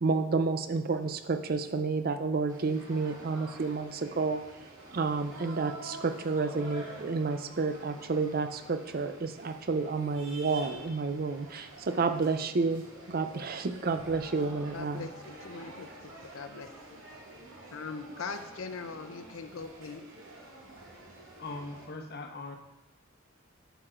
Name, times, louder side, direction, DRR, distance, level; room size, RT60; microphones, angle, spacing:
voice 1, 0.0-4.4 4.9-15.1, right 4 dB, 45° right, 9 dB, 0.6 m, -30 dB
sound 1, 2.5-21.9, right 2 dB, 70° right, 2.4 m, -48 dB
voice 2, 14.7-17.0 17.7-20.1, left 4 dB, 80° left, 9 dB, 0.7 m, -41 dB
voice 3, 20.9-22.6, left 3 dB, 55° left, 4 dB, 1.0 m, -41 dB
9.0 x 8.1 x 3.8 m, 1.0 s
head